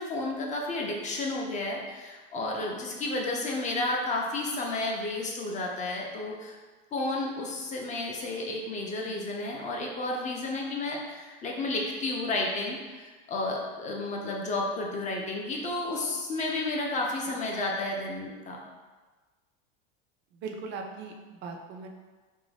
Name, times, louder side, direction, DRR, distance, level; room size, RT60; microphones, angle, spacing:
voice 1, 0.0-6.6 6.9-18.6, left 2 dB, 25° left, -1 dB, 0.5 m, -32 dB
voice 2, 20.3-21.9, right 4 dB, 35° right, 3 dB, 0.4 m, -40 dB
2.6 x 2.1 x 3.2 m, 1.3 s
supercardioid pair, 115°, 30 cm